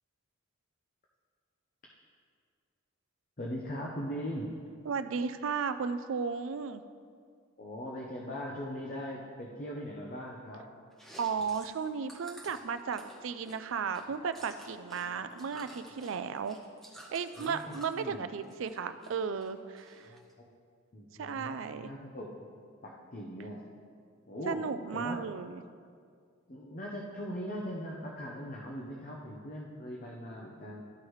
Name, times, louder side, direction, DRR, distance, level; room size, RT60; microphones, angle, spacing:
voice 1, 3.4-4.6 7.6-10.6 17.4-18.2 20.1-20.5 20.9-22.4 22.8-23.6 24.3-24.6 24.9-25.3 26.5-30.8, equal, 40° left, -3 dB, 0.7 m, -40 dB
voice 2, 4.9-6.8 11.2-16.6 17.1-20.1 21.2-21.9 24.5-25.6, right 5 dB, 65° right, 11 dB, 0.4 m, -35 dB
Chewing mastication, 10.9-15.0 15.3-18.0 18.4-19.1 19.4-20.3, right 1 dB, ahead, 0.9 m, -52 dB
13.0 x 4.7 x 3.1 m, 2.1 s
head